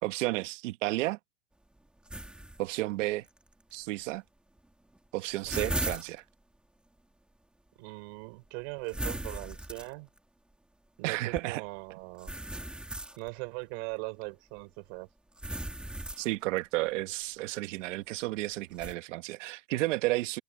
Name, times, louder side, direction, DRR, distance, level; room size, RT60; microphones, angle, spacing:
voice 1, 0.0-1.2 2.6-3.2 3.7-4.2 5.1-6.2 11.0-11.6 16.2-20.4, right 19 dB, 90° right, 1.5 m, -32 dB
sound 1, 2.1-2.6 3.3-3.4 4.6-4.7 4.9-6.2 8.9-10.2 11.3-11.4 12.2-13.3 15.4-16.6 18.8-18.9, right 1 dB, 5° right, 1.9 m, -37 dB
voice 2, 7.8-10.1 11.0-12.3 13.2-15.1, right 33 dB, 55° right, 6.6 m, -40 dB
supercardioid pair, 170°, 36 cm